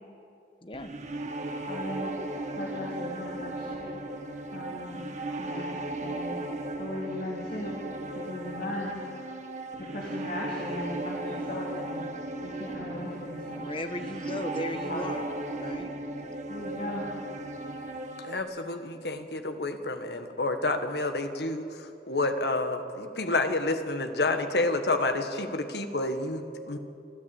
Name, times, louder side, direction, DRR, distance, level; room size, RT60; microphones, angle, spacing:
sound 1, 0.7-18.4, right 2 dB, 40° right, 1.5 m, -36 dB
voice 1, 1.7-3.9 4.5-5.1 5.4-5.8 6.0-6.3 6.8-7.8 8.1-9.0 9.8-12.0 12.4-13.6 14.9-15.3 16.5-17.1, left 1 dB, 50° left, -3 dB, 3.1 m, -38 dB
voice 2, 13.6-15.2 15.5-15.9, left 1 dB, 30° left, 8 dB, 1.1 m, -36 dB
voice 3, 18.2-26.8, left 2 dB, 65° left, 7 dB, 1.6 m, -29 dB
29.0 x 12.0 x 8.8 m, 2.7 s
head